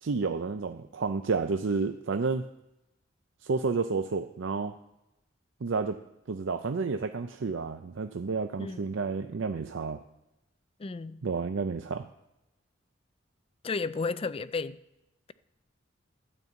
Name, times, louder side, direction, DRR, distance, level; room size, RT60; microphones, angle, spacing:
voice 1, 0.0-2.4 3.4-4.7 5.6-6.0 6.3-10.0 11.2-12.1, right 4 dB, 80° right, 0.5 m, -30 dB
voice 2, 10.8-11.2 13.6-14.8, left 4 dB, 30° left, 0.4 m, -33 dB
12.0 x 5.4 x 8.1 m
head